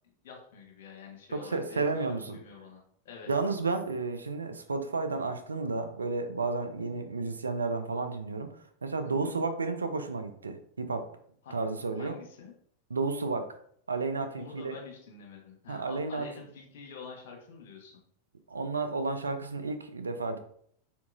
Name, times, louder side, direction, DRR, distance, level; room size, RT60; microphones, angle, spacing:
voice 1, 0.2-3.3 9.0-9.4 11.4-11.6 12.0-12.5 14.4-18.0, left 5 dB, 55° left, 1 dB, 1.3 m, -47 dB
voice 2, 1.3-2.4 3.3-8.5 8.8-11.1 11.5-12.2 12.9-13.6 13.9-14.7 15.7-16.3 18.5-20.4, right 3 dB, 75° right, 8 dB, 0.5 m, -32 dB
4.4 x 4.1 x 2.5 m, 0.63 s
figure-of-eight pair, 90°, 0 cm